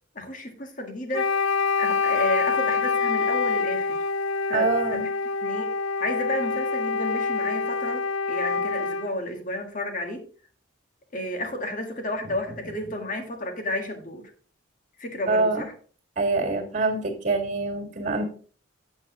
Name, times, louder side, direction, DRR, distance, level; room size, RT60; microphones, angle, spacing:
voice 1, 0.1-1.3 1.8-4.0 4.5-5.1 5.4-5.7 6.0-10.2 11.1-14.3 15.0-15.7, left 1 dB, 40° left, 1.6 m, -32 dB
Wind instrument woodwind instrument, 1.1-9.1, left 4 dB, 80° left, 0.4 m, -26 dB
voice 2, 4.5-5.1 15.3-15.6 16.2-18.2, right 3 dB, 40° right, 2.2 m, -25 dB
8.1 x 8.0 x 3.6 m
head